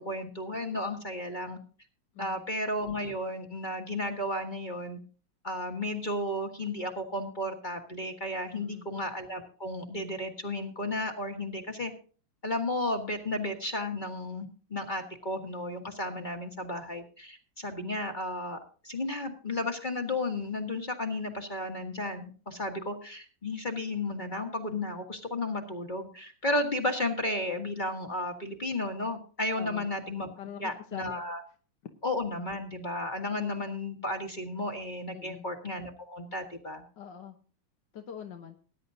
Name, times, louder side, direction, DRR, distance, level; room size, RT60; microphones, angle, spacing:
voice 1, 0.0-1.6 2.2-5.0 5.4-11.9 12.4-18.6 18.8-30.3 30.6-31.4 32.0-36.8, left 1 dB, 25° left, 4 dB, 1.4 m, -33 dB
voice 2, 8.5-8.9 29.6-29.9 30.4-31.2 35.1-35.4 37.0-37.4 37.9-38.6, left 8 dB, 70° left, 4 dB, 1.7 m, -44 dB
20.0 x 10.5 x 2.7 m, 0.38 s
omnidirectional pair, 2.0 m